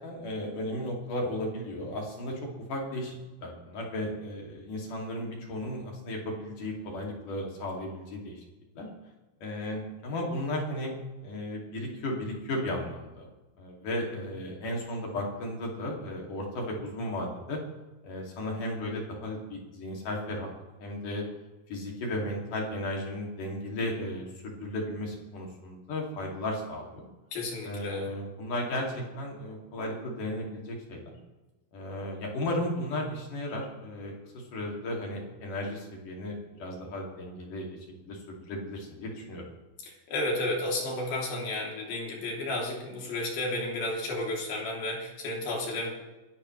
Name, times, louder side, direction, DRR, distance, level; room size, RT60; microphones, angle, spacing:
voice 1, 0.0-2.4 2.7-3.2 3.4-8.4 8.8-8.9 9.4-10.9 11.2-13.3 13.6-17.6 18.0-20.5 20.8-21.2 21.7-27.1 27.6-31.1 31.7-37.7 38.0-39.4, left 1 dB, 60° left, -1 dB, 4.1 m, -35 dB
voice 2, 27.3-28.1 39.9-45.9, left 2 dB, 85° left, -2 dB, 5.0 m, -32 dB
26.5 x 12.5 x 3.3 m, 1.1 s
omnidirectional pair, 4.1 m